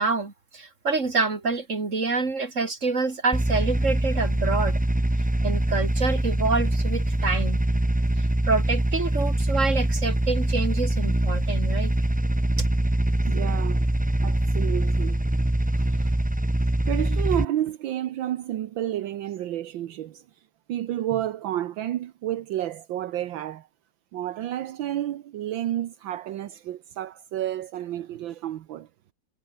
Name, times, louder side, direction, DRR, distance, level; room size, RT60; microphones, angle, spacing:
voice 1, 0.0-4.8 5.4-7.6 8.2-11.9 12.6-12.7, right 4 dB, 40° right, 3.5 m, -27 dB
sound 1, 3.3-17.4, right 1 dB, 10° right, 0.4 m, -24 dB
voice 2, 13.2-13.9 14.2-15.3 15.8-16.2 16.8-20.4 20.7-23.7 24.1-28.9, right 12 dB, 75° right, 1.7 m, -31 dB
omnidirectional pair, 2.1 m